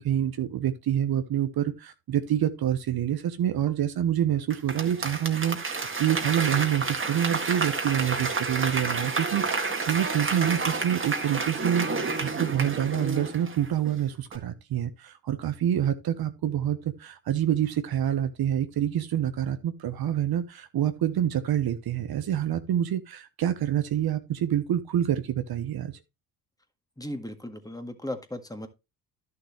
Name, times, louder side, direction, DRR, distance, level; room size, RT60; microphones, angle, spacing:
voice 1, 0.0-11.9 12.2-25.9, right 10 dB, 55° right, 1.0 m, -27 dB
Applause / Crowd, 4.5-13.9 14.3-14.4, right 4 dB, 30° right, 1.9 m, -30 dB
voice 2, 27.0-28.7, left 1 dB, 10° left, 1.8 m, -36 dB
11.0 x 6.9 x 3.2 m
supercardioid pair, 70°, 44 cm